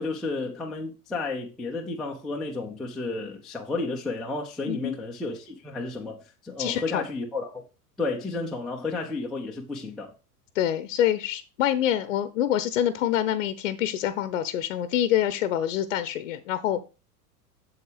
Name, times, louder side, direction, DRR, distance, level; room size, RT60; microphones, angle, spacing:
voice 1, 0.0-7.6 8.0-10.1, left 3 dB, ahead, 0.4 m, -32 dB
voice 2, 6.6-7.0 10.5-16.8, left 11 dB, 50° left, 0.8 m, -26 dB
7.9 x 7.2 x 3.3 m
figure-of-eight pair, 90°, 47 cm